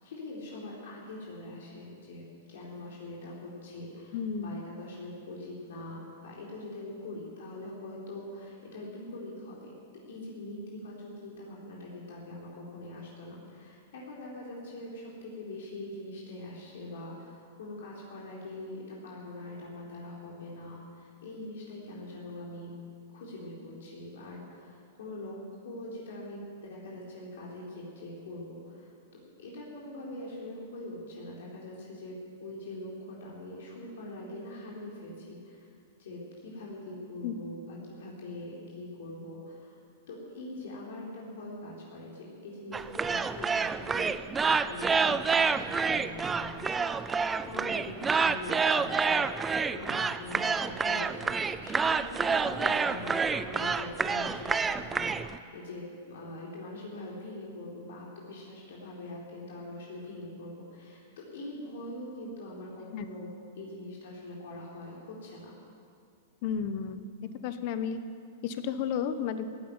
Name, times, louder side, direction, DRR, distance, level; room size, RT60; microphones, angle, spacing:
voice 1, 0.0-9.7 10.1-22.7 23.1-25.4 25.6-35.7 36.0-39.8 40.1-44.1 44.4-63.3 63.6-65.6, left 1 dB, 75° left, -4 dB, 3.8 m, -43 dB
voice 2, 4.1-4.6 37.2-37.3 62.9-63.0 66.4-67.0 67.4-68.0 68.4-69.4, left 7 dB, 45° left, 11 dB, 1.1 m, -32 dB
sound 1, 42.7-55.4, right 5 dB, 10° right, 0.4 m, -28 dB
15.0 x 9.7 x 9.8 m, 2.4 s
hypercardioid pair, 150°, 0 cm